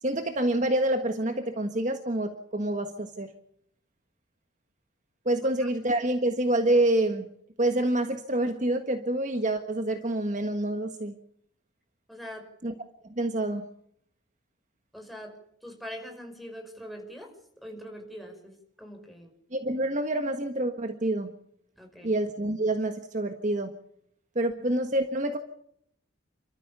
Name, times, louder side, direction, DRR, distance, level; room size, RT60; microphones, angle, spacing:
voice 1, 0.0-3.3 5.2-7.3 7.6-11.2 12.6-12.7 13.2-13.7 19.5-21.3 22.0-23.7 24.3-25.4, right 1 dB, 40° right, 6 dB, 1.5 m, -27 dB
voice 2, 12.1-12.5 14.9-17.3 17.6-19.3 21.8-22.1, equal, ahead, 3 dB, 5.4 m, -43 dB
29.5 x 13.5 x 6.9 m, 0.70 s
head